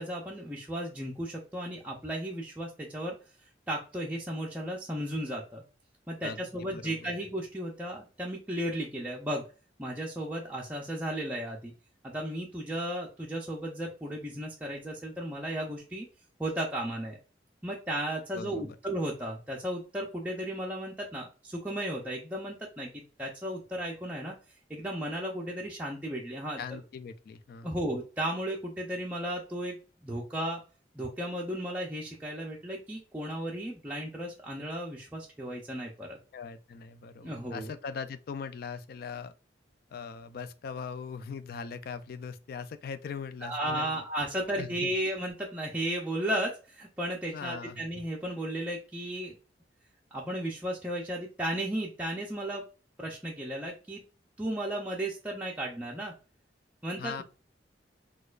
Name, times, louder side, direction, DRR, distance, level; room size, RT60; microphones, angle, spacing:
voice 1, 0.0-3.2 3.7-5.6 6.1-9.4 9.8-11.7 12.0-16.1 16.4-17.2 17.6-24.3 24.7-26.6 27.6-30.6 30.9-36.2 37.2-37.7 43.4-49.3 50.1-52.6 53.0-54.0 54.4-56.1 56.8-57.2, right 1 dB, 10° right, 0.4 m, -34 dB
voice 2, 6.2-7.1 18.3-18.8 26.6-27.7 36.3-39.3 39.9-44.0 44.6-44.9 47.3-47.8 57.0-57.2, left 6 dB, 55° left, 0.3 m, -40 dB
4.2 x 2.3 x 2.3 m
head